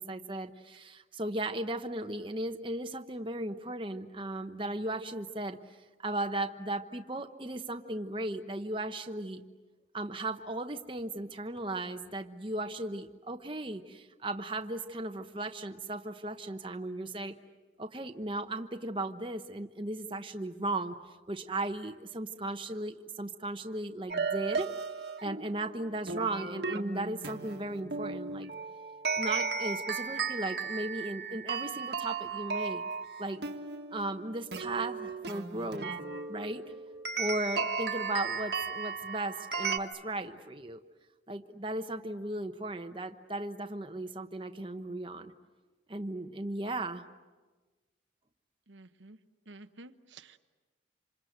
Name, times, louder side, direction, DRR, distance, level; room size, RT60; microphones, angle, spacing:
voice 1, 0.0-5.6 6.0-9.4 9.9-17.3 17.8-21.0 21.3-24.7 25.2-28.5 29.2-32.8 33.2-33.4 33.9-35.9 36.3-36.6 37.2-40.8 41.3-45.3 45.9-47.0, right 2 dB, 25° right, 6 dB, 1.0 m, -36 dB
sound 1, 24.1-39.8, right 5 dB, 65° right, 1.5 m, -35 dB
voice 2, 48.7-49.2 49.5-50.4, right 2 dB, 85° right, 8 dB, 1.1 m, -51 dB
27.0 x 27.0 x 8.0 m, 1.3 s
head